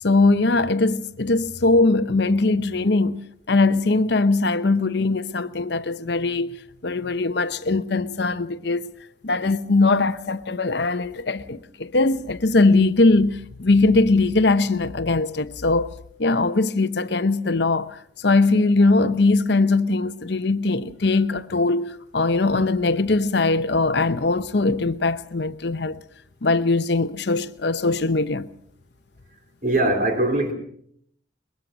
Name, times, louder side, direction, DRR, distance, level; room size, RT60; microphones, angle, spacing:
voice 1, 0.0-3.2 3.5-8.9 9.2-15.9 16.2-26.0 26.4-28.5, left 3 dB, 55° left, 0.8 m, -21 dB
voice 2, 29.6-30.5, right 1 dB, 45° right, 3.8 m, -21 dB
23.0 x 21.0 x 6.2 m
head